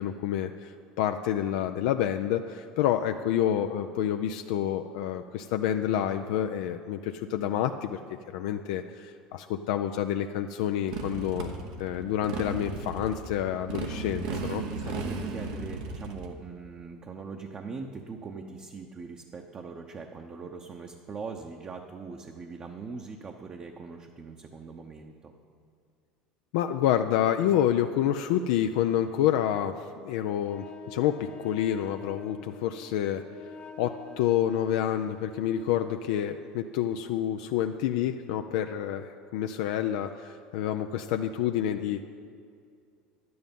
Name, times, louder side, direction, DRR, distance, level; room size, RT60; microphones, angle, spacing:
voice 1, 0.0-8.0 8.3-11.5 11.8-14.6 26.5-29.8 30.0-33.2 33.8-42.0, left 10 dB, 75° left, 6 dB, 0.4 m, -28 dB
Motorcycle, 10.9-16.3, right 3 dB, 80° right, 1.2 m, -35 dB
voice 2, 14.3-25.3, right 4 dB, 35° right, 2 dB, 0.8 m, -41 dB
Wind instrument woodwind instrument, 30.4-36.0, left 5 dB, 35° left, 1.0 m, -45 dB
11.0 x 9.5 x 5.3 m, 2.3 s
hypercardioid pair, 90°, 4 cm